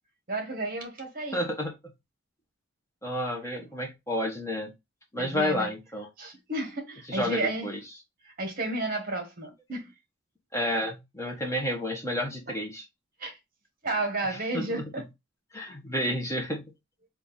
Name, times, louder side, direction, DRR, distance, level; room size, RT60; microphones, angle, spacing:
voice 1, 0.3-1.4 5.2-5.7 6.2-7.7 8.2-9.9 13.2-13.4 13.8-15.0, right 2 dB, 45° right, 1.1 m, -32 dB
voice 2, 1.3-1.7 3.0-4.7 5.1-6.1 7.1-7.8 10.5-12.8 14.3-14.9 15.5-16.6, left 1 dB, 15° left, 0.8 m, -30 dB
3.7 x 2.4 x 3.8 m
head